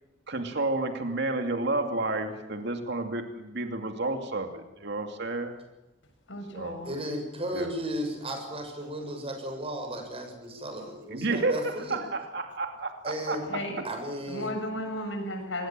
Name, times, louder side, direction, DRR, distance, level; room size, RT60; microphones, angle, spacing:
voice 1, 0.3-5.6 6.5-6.8 7.5-7.7 11.1-13.6, right 2 dB, 60° right, 5 dB, 2.6 m, -31 dB
voice 2, 6.3-6.9 13.5-13.8 14.3-15.7, left 1 dB, 75° left, 5 dB, 7.4 m, -34 dB
voice 3, 6.8-12.0 13.0-13.5 13.8-14.6, equal, 30° right, 4 dB, 7.0 m, -35 dB
26.0 x 21.0 x 7.6 m, 1.0 s
head